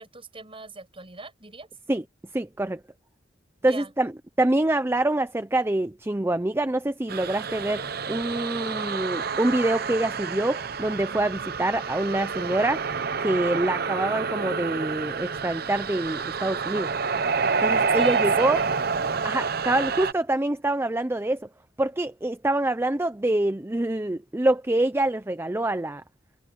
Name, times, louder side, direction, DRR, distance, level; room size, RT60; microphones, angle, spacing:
voice 1, 0.0-1.7 3.6-3.9 17.9-19.2, right 4 dB, 30° right, 7.2 m, -42 dB
voice 2, 2.3-2.8 3.6-4.1 4.4-12.8 13.2-16.9 17.6-18.6 19.2-21.5 21.8-26.0, right 1 dB, 15° right, 0.5 m, -25 dB
sound 1, 7.1-20.1, right 5 dB, 55° right, 0.9 m, -28 dB
head